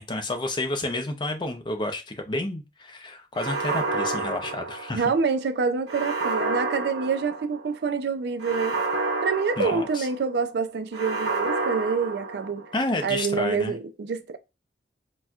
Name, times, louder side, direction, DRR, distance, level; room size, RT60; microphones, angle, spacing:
voice 1, 0.0-5.1 9.6-10.1 12.7-13.8, left 2 dB, 25° left, 0.5 m, -30 dB
sound 1, 3.4-5.2 5.9-7.7 8.4-10.3 10.9-12.8, right 3 dB, 90° right, 0.8 m, -29 dB
voice 2, 4.9-8.8 9.2-12.7 13.0-14.4, right 5 dB, 65° right, 0.4 m, -26 dB
4.1 x 2.2 x 2.3 m
head